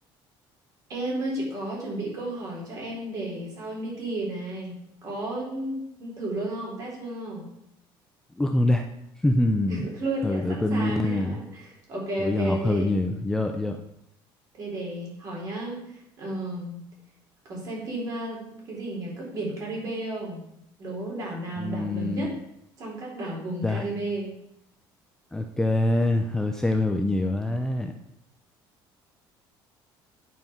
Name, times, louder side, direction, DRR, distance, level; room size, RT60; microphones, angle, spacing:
voice 1, 0.9-7.5 9.7-13.0 14.5-16.8 17.4-20.4 20.8-22.3 22.8-24.3, right 1 dB, 40° right, -2 dB, 4.4 m, -33 dB
voice 2, 8.4-8.9 9.2-9.8 10.2-11.4 12.2-13.8 21.6-22.3 23.6-23.9 25.3-27.9, left 1 dB, 5° left, 5 dB, 0.5 m, -25 dB
9.2 x 8.4 x 5.8 m, 0.79 s
cardioid pair, 170°, 9 cm